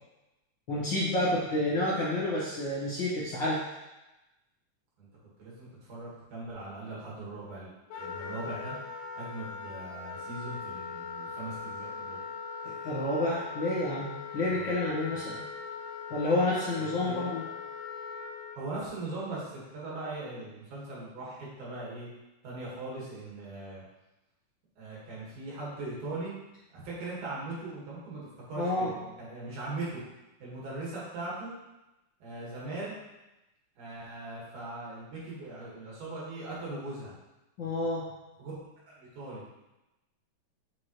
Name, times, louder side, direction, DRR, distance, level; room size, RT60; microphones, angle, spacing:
voice 1, 0.7-3.6 12.6-14.1 14.3-15.4 16.1-17.4 28.6-28.9 37.6-38.1, left 1 dB, 50° left, -8 dB, 1.6 m, -29 dB
voice 2, 5.4-7.7 8.0-8.8 9.1-12.2 14.5-15.2 16.8-17.3 18.5-22.1 22.4-23.8 24.8-26.3 26.7-30.0 30.4-31.5 32.2-33.0 33.8-37.1 38.4-38.5 38.9-39.4, right 2 dB, 80° right, -7 dB, 3.4 m, -40 dB
Wind instrument woodwind instrument, 7.9-18.6, left 5 dB, 80° left, 2.2 m, -40 dB
7.6 x 4.9 x 3.2 m, 1.0 s
omnidirectional pair, 3.5 m